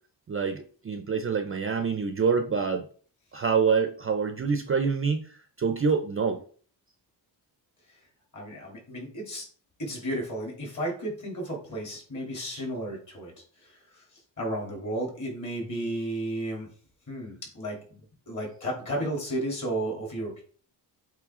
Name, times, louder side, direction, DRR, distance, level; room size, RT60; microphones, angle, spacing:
voice 1, 0.3-2.9 3.3-6.4, right 5 dB, 30° right, 7 dB, 0.5 m, -26 dB
voice 2, 8.3-9.5 9.8-16.7 17.1-20.4, right 1 dB, 45° left, 0 dB, 3.1 m, -33 dB
8.1 x 3.3 x 3.7 m, 0.43 s
wide cardioid pair, 160°, 43 cm